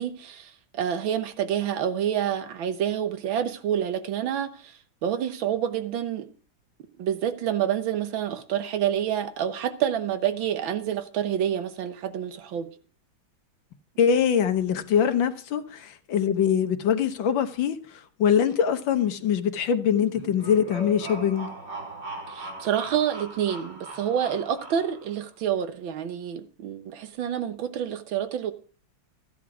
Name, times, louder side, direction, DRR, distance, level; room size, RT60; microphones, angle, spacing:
voice 1, 0.0-6.3 7.0-12.7 22.3-28.5, right 9 dB, 85° right, 1.8 m, -28 dB
voice 2, 14.0-17.8 18.2-21.5, left 8 dB, 75° left, 1.7 m, -23 dB
sound 1, 20.1-25.2, right 2 dB, 60° right, 4.1 m, -39 dB
14.0 x 9.9 x 4.8 m
omnidirectional pair, 2.1 m